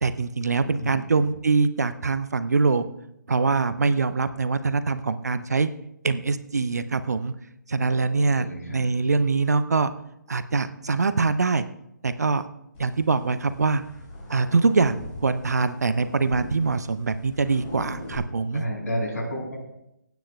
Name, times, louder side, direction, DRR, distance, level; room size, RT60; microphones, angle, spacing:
voice 1, 0.0-2.9 3.3-5.7 6.0-7.3 7.7-9.9 10.3-11.6 12.0-12.4 12.8-13.8 14.3-18.6, right 4 dB, 60° right, 12 dB, 0.7 m, -23 dB
voice 2, 0.8-1.3 7.8-8.8 18.5-19.6, equal, 60° left, -1 dB, 5.8 m, -32 dB
sound 1, 12.7-18.2, left 1 dB, 25° left, 3.5 m, -41 dB
27.0 x 9.2 x 2.3 m, 0.82 s
figure-of-eight pair, 140°, 10 cm